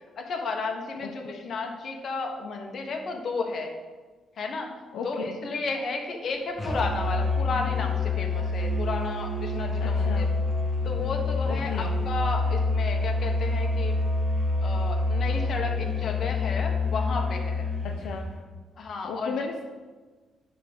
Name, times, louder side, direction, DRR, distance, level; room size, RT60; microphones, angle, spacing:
voice 1, 0.2-3.7 4.4-10.3 10.8-14.0 14.6-17.7 18.8-19.5, left 3 dB, 55° left, 3 dB, 1.4 m, -33 dB
voice 2, 1.0-1.4 4.9-5.4 9.8-10.3 11.4-11.9 17.8-18.3 19.0-19.6, left 5 dB, 75° left, 2 dB, 0.7 m, -35 dB
Musical instrument, 6.6-18.3, left 3 dB, 15° left, 2.3 m, -27 dB
10.0 x 3.8 x 6.2 m, 1.4 s
cardioid pair, 90°, 0 cm